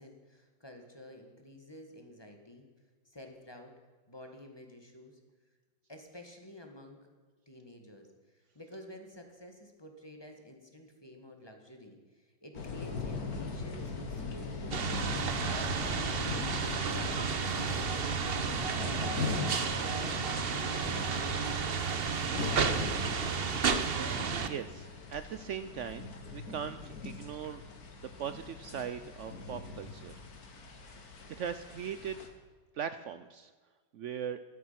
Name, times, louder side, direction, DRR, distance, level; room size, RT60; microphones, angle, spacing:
voice 1, 0.0-2.7 3.1-3.7 4.1-5.2 5.9-7.1 7.5-14.8 15.1-16.3 16.6-18.8 19.4-21.8 22.0-23.4, left 1 dB, 15° left, 3 dB, 1.9 m, -51 dB
sound 1, 12.5-32.3, left 4 dB, 55° left, 2.1 m, -40 dB
sound 2, 14.7-24.5, right 5 dB, 40° right, 0.9 m, -32 dB
voice 2, 24.4-27.6 28.2-30.2 31.3-32.2 32.7-33.5 33.9-34.4, right 8 dB, 85° right, 11 dB, 0.6 m, -39 dB
15.0 x 12.5 x 5.8 m, 1.4 s
omnidirectional pair, 2.0 m